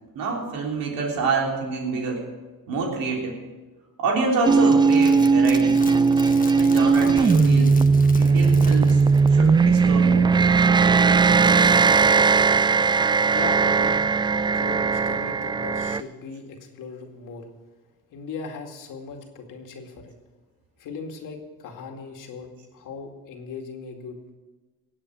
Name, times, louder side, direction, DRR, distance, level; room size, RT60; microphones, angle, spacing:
voice 1, 0.1-2.2 2.7-3.4 4.0-5.8 6.5-7.7 8.2-9.0 9.3-10.3, right 4 dB, 75° right, -1 dB, 3.5 m, -27 dB
sound 1, 4.5-16.0, right 4 dB, 15° right, 0.3 m, -18 dB
sound 2, 4.9-9.5 9.8-9.9, left 4 dB, 25° left, 1.1 m, -40 dB
voice 2, 13.3-14.1 14.5-17.5 18.1-20.2 20.8-24.2, left 4 dB, 65° left, 3 dB, 2.3 m, -38 dB
18.0 x 8.1 x 6.1 m, 1.3 s
cardioid pair, 95°, 35 cm